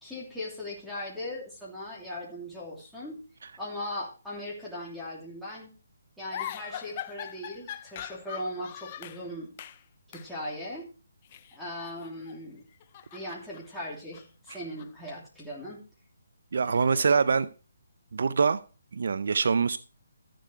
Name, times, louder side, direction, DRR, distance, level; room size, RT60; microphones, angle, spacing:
voice 1, 0.0-3.2 3.6-5.7 6.2-9.5 10.1-10.9 11.5-12.6 13.1-15.8 16.5-17.1, left 1 dB, ahead, 2.9 m, -39 dB
sound 1, 6.3-9.2 9.6-9.8 10.1-10.3 11.2-12.4 12.7-15.1, left 11 dB, 35° left, 0.6 m, -42 dB
voice 2, 16.5-17.5 18.1-18.6 18.9-19.8, right 5 dB, 65° right, 0.6 m, -24 dB
13.0 x 7.7 x 4.5 m
hypercardioid pair, 155°, 0 cm